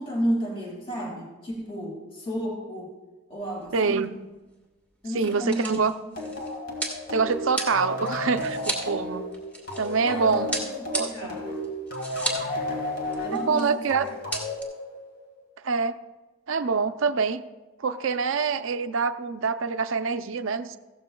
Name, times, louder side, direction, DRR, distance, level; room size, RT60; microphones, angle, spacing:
voice 1, 0.0-2.9 3.3-4.1 5.0-6.3 10.0-11.5 13.2-14.1, equal, 25° left, -1 dB, 2.1 m, -32 dB
sound 1, 3.5-3.8 4.0-4.1 4.9-10.0 10.5-12.5 12.8-12.9 13.1-13.7 14.0-14.6, right 1 dB, 5° left, 1.5 m, -34 dB
voice 2, 3.7-4.1 5.1-5.9 7.1-9.3 9.8-10.5 10.9-11.3 13.3-14.1 15.6-16.0 16.5-17.4 17.8-20.8, right 5 dB, 65° right, 11 dB, 0.5 m, -25 dB
sound 2, 6.2-15.4, left 1 dB, 50° left, 1.8 m, -33 dB
15.0 x 13.0 x 2.3 m, 1.2 s
head